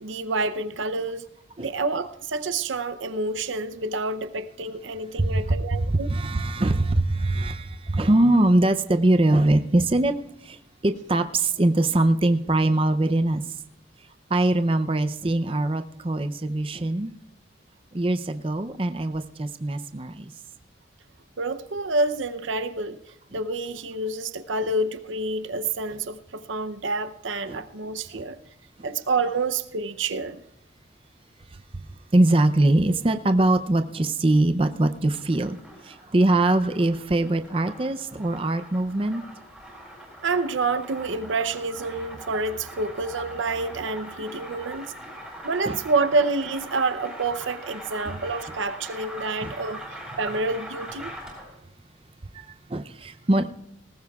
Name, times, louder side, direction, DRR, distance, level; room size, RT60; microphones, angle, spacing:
voice 1, 0.0-1.3 1.6-6.1 21.4-23.0 23.3-28.4 28.8-30.4 40.2-44.9 45.4-51.1, right 3 dB, 85° right, 0.7 m, -28 dB
voice 2, 5.2-10.1 10.4-13.4 14.3-17.1 17.9-20.3 27.5-27.6 28.1-28.2 31.7-31.9 32.1-35.6 35.8-39.2 45.6-45.8 48.2-48.3 49.2-49.5 52.3-52.4 52.7-53.5, right 2 dB, 30° right, 0.5 m, -22 dB
sound 1, 34.9-51.6, equal, ahead, 7.3 m, -42 dB
19.5 x 18.5 x 2.4 m
head